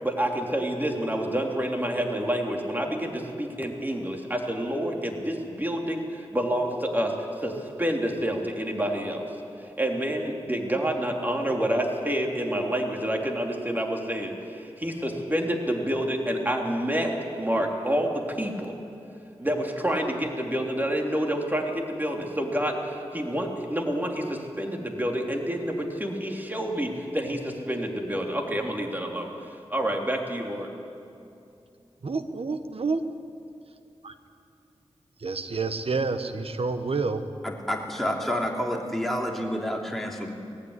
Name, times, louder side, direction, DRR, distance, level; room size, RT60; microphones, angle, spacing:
voice 1, 0.0-9.3 9.6-18.8 19.4-30.7, equal, 15° right, 1 dB, 3.4 m, -28 dB
voice 2, 32.0-33.0 34.0-34.1 35.2-37.2, right 4 dB, 65° right, 9 dB, 1.2 m, -28 dB
voice 3, 37.4-40.3, equal, ahead, -1 dB, 3.0 m, -29 dB
19.5 x 15.0 x 9.9 m, 2.6 s
cardioid pair, 45°, 11 cm